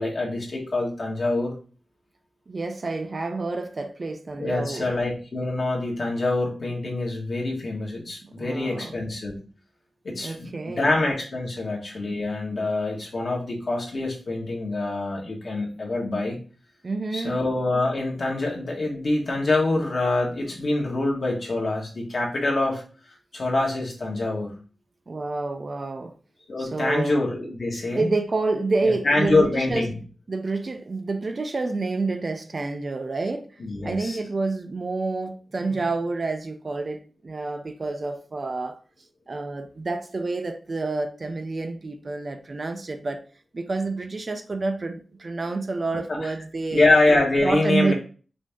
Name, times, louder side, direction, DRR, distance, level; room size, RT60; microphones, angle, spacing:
voice 1, 0.0-1.5 4.4-9.4 10.0-16.4 17.1-22.8 23.3-24.5 26.5-28.1 28.8-30.0 33.6-34.2 45.9-46.2 46.7-47.9, left 2 dB, 50° left, 1.4 m, -25 dB
voice 2, 2.5-4.9 8.2-9.0 10.2-10.9 16.8-17.5 25.1-26.1 26.6-27.2 27.9-29.8 30.3-33.5 33.8-38.8 39.3-43.2 43.5-46.9 47.4-47.9, right 3 dB, 40° right, 0.5 m, -28 dB
5.1 x 2.8 x 3.4 m
wide cardioid pair, 160°, 0 cm